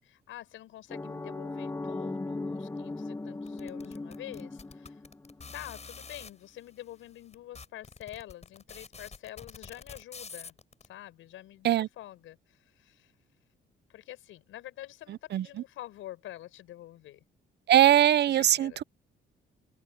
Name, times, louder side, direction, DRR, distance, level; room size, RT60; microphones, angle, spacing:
voice 1, 0.0-5.0 5.5-10.6 10.9-13.1 13.9-17.2 18.2-18.8, left 14 dB, 85° left, 6.3 m, -47 dB
sound 1, 0.9-5.7, left 2 dB, 15° left, 0.9 m, -38 dB
sound 2, 3.5-6.3 7.0-7.1 7.3-10.9, left 4 dB, 35° left, 7.6 m, -46 dB
voice 2, 15.1-15.5 17.7-18.8, right 12 dB, 60° right, 0.5 m, -22 dB
open air
cardioid pair, 90°, 20 cm